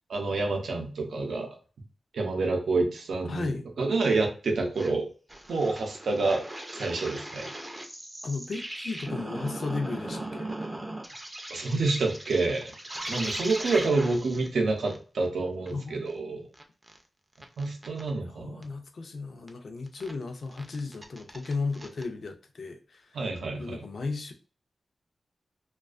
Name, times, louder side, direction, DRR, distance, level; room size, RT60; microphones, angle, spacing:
voice 1, 0.1-1.5 2.1-5.1 5.5-6.4 6.7-7.5 11.5-12.7 13.1-16.4 17.6-18.7 23.1-23.8, right 3 dB, 90° right, 2 dB, 0.5 m, -28 dB
voice 2, 3.3-3.6 8.2-10.5 15.7-16.4 18.3-23.1 23.6-24.3, left 3 dB, 60° left, 5 dB, 0.4 m, -35 dB
sound 1, 4.8-4.9 5.3-14.5 14.9-15.0 15.2-15.3 15.7-15.8 16.1-16.2 16.5-17.0 17.4-18.1 18.6-18.7 19.5-19.6 19.9-20.1 20.5-22.0, right 1 dB, 15° right, 0.4 m, -38 dB
2.3 x 2.2 x 2.4 m, 0.37 s
wide cardioid pair, 140°, 0 cm